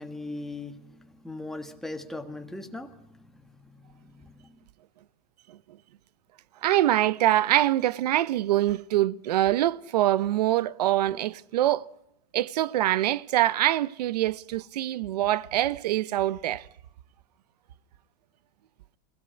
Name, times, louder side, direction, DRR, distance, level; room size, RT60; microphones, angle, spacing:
voice 1, 0.0-4.5, left 2 dB, ahead, 1.4 m, -40 dB
voice 2, 6.6-11.8 12.3-16.7, right 14 dB, 90° right, 1.0 m, -24 dB
29.0 x 16.5 x 9.9 m
supercardioid pair, 175°, 20 cm